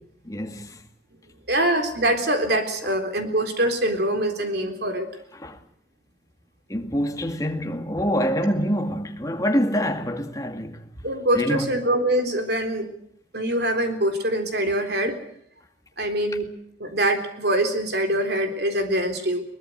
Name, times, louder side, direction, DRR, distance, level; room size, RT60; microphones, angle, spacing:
voice 1, 0.2-0.8 5.4-5.6 6.7-10.9 11.3-11.7, equal, 20° left, 2.1 m, -25 dB
voice 2, 1.5-5.1 11.0-12.9 13.3-15.2 16.0-16.5 16.8-19.4, right 1 dB, 65° right, 3.8 m, -24 dB
22.0 x 20.0 x 8.0 m
head